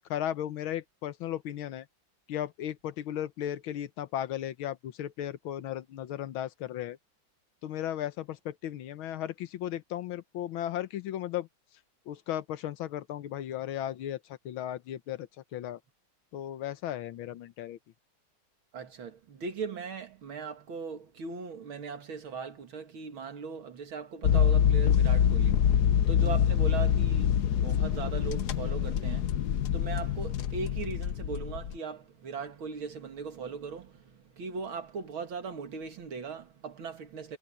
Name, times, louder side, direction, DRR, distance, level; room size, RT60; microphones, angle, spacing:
voice 1, 0.1-1.9 2.3-7.0 7.6-11.5 12.1-15.8 16.3-17.8 26.2-26.4, left 11 dB, 90° left, 1.7 m, -36 dB
voice 2, 18.7-37.4, right 5 dB, 85° right, 2.8 m, -39 dB
sound 1, 24.2-31.8, left 9 dB, 60° left, 1.2 m, -25 dB
omnidirectional pair, 2.2 m